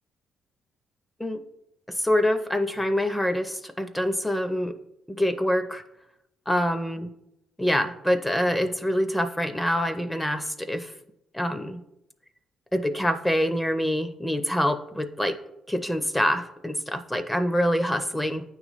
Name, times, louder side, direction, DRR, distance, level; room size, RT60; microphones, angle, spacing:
voice 1, 2.0-4.7 5.1-5.8 6.5-7.1 7.6-10.9 11.3-11.8 12.7-15.4 15.7-18.4, equal, 10° left, 9 dB, 0.5 m, -25 dB
9.1 x 3.1 x 5.4 m, 0.83 s
cardioid pair, 90°, 0 cm